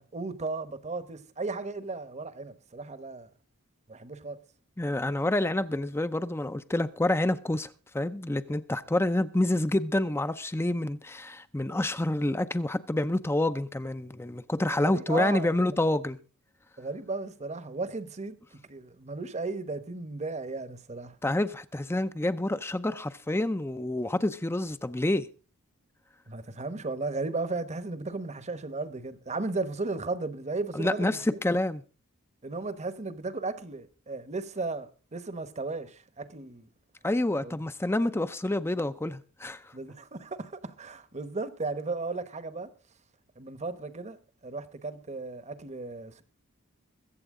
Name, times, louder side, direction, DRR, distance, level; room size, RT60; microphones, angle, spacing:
voice 1, 0.0-3.3 3.9-4.4 14.6-15.8 16.8-18.4 18.7-21.2 26.3-31.4 32.4-36.7 37.4-37.6 39.7-42.7 43.4-46.2, right 3 dB, 30° right, 1.0 m, -35 dB
voice 2, 4.8-16.2 21.2-25.3 30.7-31.8 37.0-39.7, left 1 dB, 10° left, 0.5 m, -28 dB
22.5 x 8.0 x 3.7 m
head